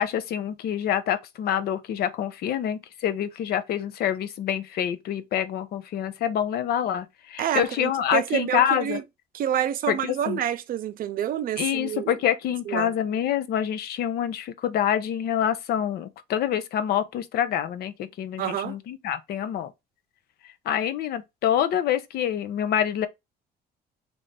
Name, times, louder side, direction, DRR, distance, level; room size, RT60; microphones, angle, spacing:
voice 1, 0.0-9.0 9.9-10.4 11.6-19.7 20.7-23.1, left 10 dB, 65° left, 0.7 m, -26 dB
voice 2, 7.4-9.0 9.3-12.2 12.7-12.9 18.4-18.8, right 10 dB, 60° right, 0.6 m, -28 dB
3.3 x 3.1 x 3.9 m
cardioid pair, 110°, 17 cm